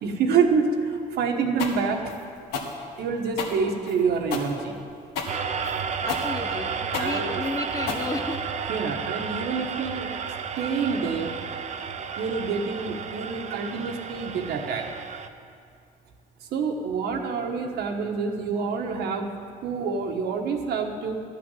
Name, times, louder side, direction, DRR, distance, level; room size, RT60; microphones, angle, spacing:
voice 1, 0.0-2.0 3.0-4.7 7.0-7.3 8.7-10.1 10.6-11.3 12.2-14.9 16.5-19.3 19.6-21.2, right 5 dB, 70° right, 3 dB, 1.3 m, -27 dB
sound 1, 1.6-8.7, left 4 dB, 85° left, 1.5 m, -33 dB
sound 2, 5.3-15.3, right 6 dB, 45° right, 0.7 m, -32 dB
voice 2, 6.0-8.5, left 2 dB, 20° left, 7 dB, 0.7 m, -32 dB
12.5 x 6.0 x 9.1 m, 2.3 s
cardioid pair, 110°, 17 cm